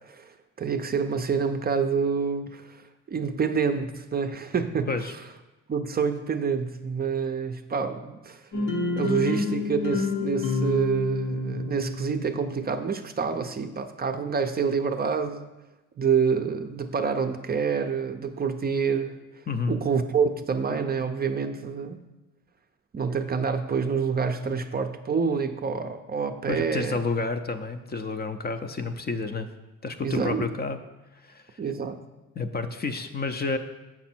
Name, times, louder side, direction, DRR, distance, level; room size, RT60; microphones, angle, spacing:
voice 1, 0.0-5.1 5.7-8.4 9.0-15.5 16.0-19.2 19.7-22.1 22.9-27.0 30.0-30.5 31.6-32.0, right 6 dB, 30° right, 7 dB, 0.5 m, -27 dB
sound 1, 8.5-12.5, left 3 dB, 80° left, 1.3 m, -28 dB
voice 2, 19.5-19.8 26.5-29.5 29.8-30.8 31.2-31.6 32.4-33.6, left 4 dB, 30° left, 8 dB, 0.5 m, -30 dB
7.0 x 6.0 x 4.4 m, 1.1 s
cardioid pair, 90°, 30 cm